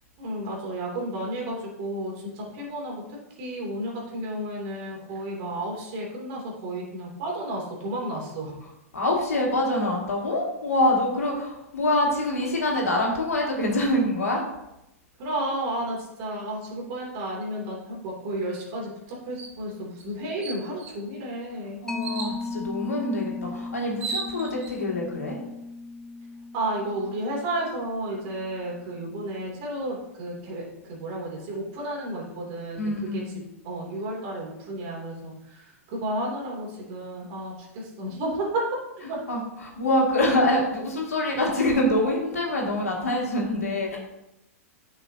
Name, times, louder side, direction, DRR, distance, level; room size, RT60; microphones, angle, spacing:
voice 1, 0.2-8.6 15.2-21.8 26.5-38.7 39.0-39.2, right 1 dB, 50° right, -2 dB, 2.8 m, -32 dB
voice 2, 8.9-14.4 21.8-25.4 32.8-33.3 39.3-39.4 39.8-44.0, left 1 dB, 90° left, -2 dB, 2.3 m, -25 dB
sound 1, 19.4-19.6 20.0-20.1 20.4-21.0 22.0-22.4 23.5-23.6 23.8-24.7, right 4 dB, 65° right, 2.0 m, -34 dB
Mallet percussion, 21.9-28.9, left 3 dB, 5° left, 0.5 m, -37 dB
9.8 x 5.8 x 2.8 m, 0.89 s
hypercardioid pair, 115°, 8 cm